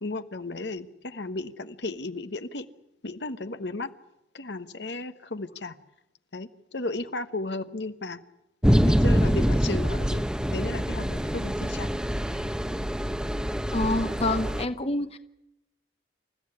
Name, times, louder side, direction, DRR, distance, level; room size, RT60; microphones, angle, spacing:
voice 1, 0.0-2.7 3.0-3.9 4.3-5.8 6.3-8.2 8.8-11.9 12.2-12.5, left 2 dB, 70° left, 10 dB, 1.3 m, -34 dB
sound 1, 8.6-14.7, equal, 5° right, 1.0 m, -25 dB
voice 2, 13.7-15.2, left 2 dB, 35° left, 10 dB, 1.0 m, -27 dB
28.5 x 14.5 x 9.8 m, 0.88 s
head